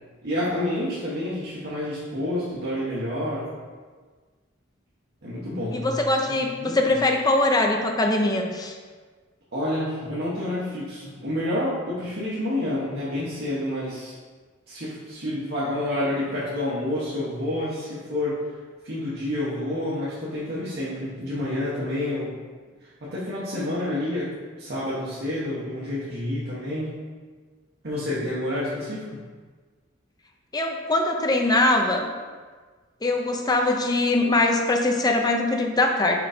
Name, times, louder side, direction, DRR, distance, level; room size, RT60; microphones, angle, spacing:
voice 1, 0.2-3.5 5.2-6.0 6.3-6.8 9.5-14.1 14.7-18.5 18.8-22.3 22.8-27.0 27.8-29.2, left 1 dB, 55° right, -9 dB, 1.2 m, -29 dB
voice 2, 5.7-8.7 30.5-32.1 33.0-36.2, left 2 dB, 20° left, 2 dB, 0.6 m, -22 dB
4.9 x 3.9 x 5.0 m, 1.5 s
head